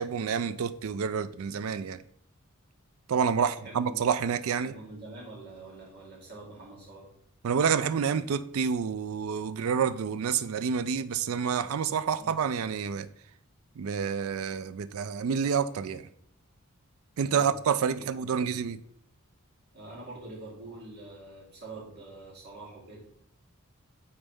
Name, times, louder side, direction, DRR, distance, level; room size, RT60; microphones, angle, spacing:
voice 1, 0.0-2.0 3.1-4.7 7.4-13.1 13.8-16.0 17.2-18.8, right 6 dB, 75° right, 0.4 m, -28 dB
voice 2, 3.4-4.0 4.6-7.1 12.2-12.3 18.0-18.6 19.7-23.0, right 2 dB, 50° right, 2.8 m, -45 dB
8.7 x 4.0 x 3.5 m
head